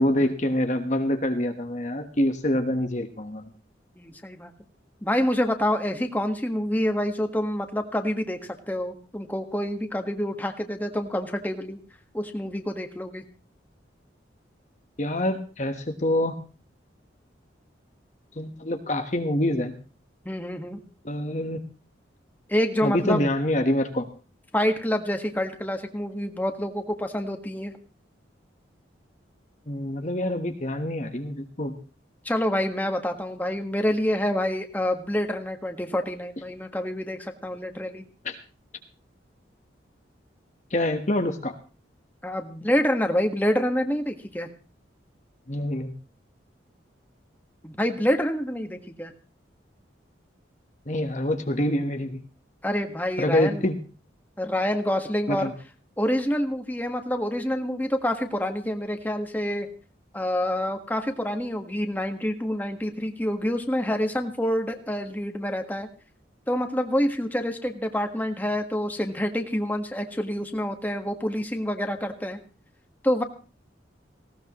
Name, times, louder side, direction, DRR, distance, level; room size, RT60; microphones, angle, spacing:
voice 1, 0.0-3.5 15.0-16.4 18.4-19.8 21.0-21.6 22.8-24.1 29.7-31.8 38.2-38.4 40.7-41.6 45.5-45.9 50.9-52.2 53.2-53.8 55.3-55.5, left 1 dB, 40° left, 5 dB, 1.3 m, -26 dB
voice 2, 4.0-4.5 5.0-8.4 8.7-11.8 12.1-13.2 20.2-20.8 22.5-23.2 24.5-27.7 32.2-38.0 42.2-44.5 47.6-49.1 52.6-53.6 54.4-55.5 56.0-59.7 60.1-65.9 66.5-72.4 73.0-73.2, equal, 10° left, 5 dB, 1.6 m, -27 dB
19.0 x 17.5 x 3.1 m, 0.37 s
head